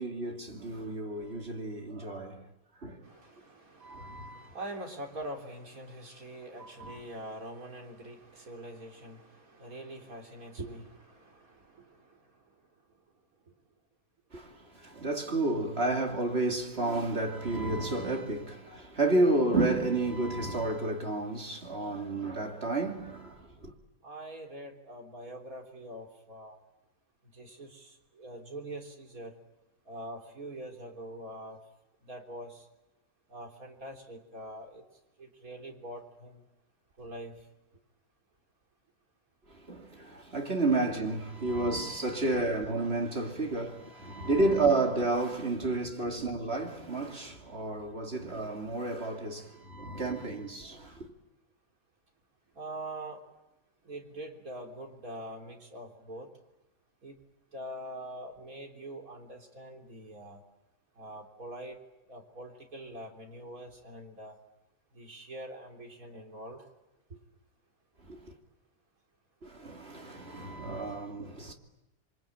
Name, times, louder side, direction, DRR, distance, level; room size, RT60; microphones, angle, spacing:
voice 1, 0.0-2.4 2.8-3.0 3.8-4.6 6.6-7.1 14.3-23.7 39.5-51.1 68.1-68.3 69.4-71.5, right 2 dB, 45° right, 2.9 m, -31 dB
voice 2, 3.0-12.2 24.0-26.6 27.3-29.3 29.9-31.6 32.0-32.6 33.3-34.8 35.2-36.4 37.0-37.4 46.1-46.2 49.4-49.6 52.6-53.2 53.8-56.3 57.0-57.2 57.5-60.4 61.0-61.8 62.1-64.4 64.9-66.7 67.1-67.2, right 1 dB, 75° right, 4.0 m, -44 dB
28.0 x 24.5 x 8.8 m
omnidirectional pair, 1.5 m